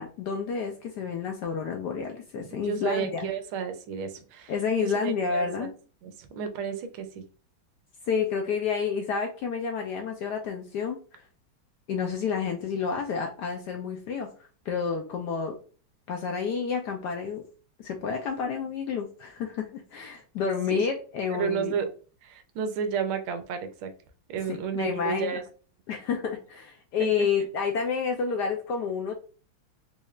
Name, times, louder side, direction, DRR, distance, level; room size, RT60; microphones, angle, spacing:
voice 1, 0.0-3.3 4.5-5.7 8.1-11.2 11.9-14.3 14.7-15.6 16.1-17.4 17.8-21.8 24.5-25.4 25.9-29.1, left 6 dB, 75° left, 3 dB, 1.0 m, -29 dB
voice 2, 2.4-4.5 4.8-5.7 6.0-7.2 20.7-20.9 21.3-21.9 22.2-23.9 24.3-25.4 27.2-27.3, right 7 dB, 85° right, 8 dB, 1.5 m, -32 dB
4.1 x 3.2 x 2.3 m, 0.38 s
omnidirectional pair, 2.2 m